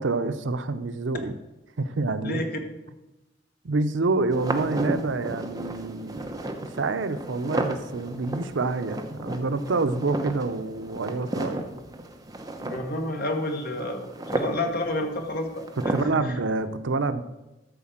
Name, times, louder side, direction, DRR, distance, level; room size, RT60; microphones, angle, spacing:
voice 1, 0.0-1.3 1.8-2.4 3.6-6.4 6.8-11.6 15.9-17.2, right 3 dB, 75° right, 11 dB, 0.6 m, -27 dB
sound 1, 4.3-16.1, right 1 dB, 20° right, 0.8 m, -34 dB
voice 2, 12.6-16.0, left 1 dB, 50° left, 4 dB, 1.4 m, -30 dB
12.5 x 4.3 x 7.4 m, 0.99 s
head